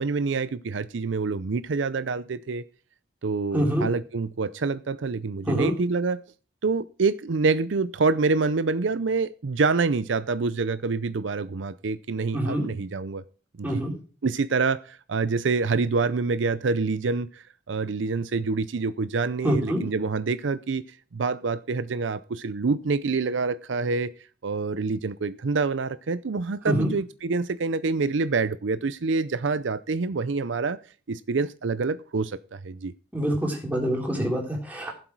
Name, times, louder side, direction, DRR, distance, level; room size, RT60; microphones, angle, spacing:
voice 1, 0.0-2.6 3.2-6.2 6.6-13.2 13.6-13.8 14.2-20.8 21.1-24.1 24.4-30.8 31.1-32.9, right 4 dB, 75° right, 0.5 m, -26 dB
voice 2, 3.5-3.9 5.5-5.7 12.3-12.7 13.6-13.9 19.4-19.8 26.7-26.9 33.1-34.9, equal, 10° right, 3.8 m, -25 dB
16.5 x 7.8 x 4.6 m
head